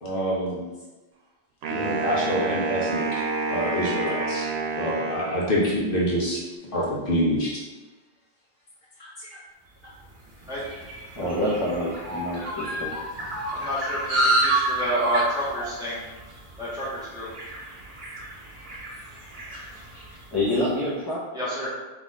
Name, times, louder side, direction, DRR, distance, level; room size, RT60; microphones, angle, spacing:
voice 1, 0.0-0.6 1.7-3.2 3.5-4.5 4.7-6.4 6.7-7.5 9.0-9.4 19.9-20.0, equal, 60° left, -5 dB, 1.0 m, -26 dB
Wind instrument woodwind instrument, 1.6-5.9, right 3 dB, 85° right, 0.9 m, -29 dB
sound 1, 9.9-20.5, right 2 dB, 55° right, 1.1 m, -30 dB
voice 2, 11.1-13.0 20.3-21.2, left 1 dB, 25° left, -10 dB, 0.8 m, -27 dB
voice 3, 13.5-16.0 16.6-17.3 21.3-21.7, equal, 5° right, -10 dB, 1.4 m, -29 dB
4.0 x 3.0 x 3.7 m, 1.2 s
omnidirectional pair, 1.0 m